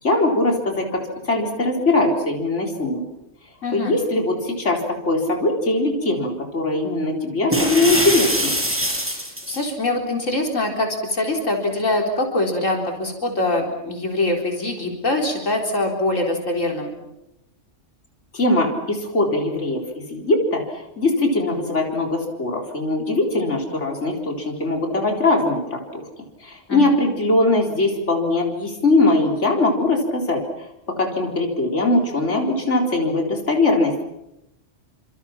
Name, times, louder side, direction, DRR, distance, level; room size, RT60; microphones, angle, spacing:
voice 1, 0.0-3.0 3.7-8.6 18.3-19.8 20.1-26.1 26.4-34.0, left 2 dB, 70° left, 1 dB, 4.4 m, -21 dB
voice 2, 3.6-3.9 9.5-16.9 26.7-26.8, left 2 dB, 85° left, 1 dB, 4.4 m, -23 dB
sound 1, 7.5-9.6, equal, 10° right, 7.7 m, -23 dB
29.5 x 26.5 x 6.0 m, 0.87 s
omnidirectional pair, 1.3 m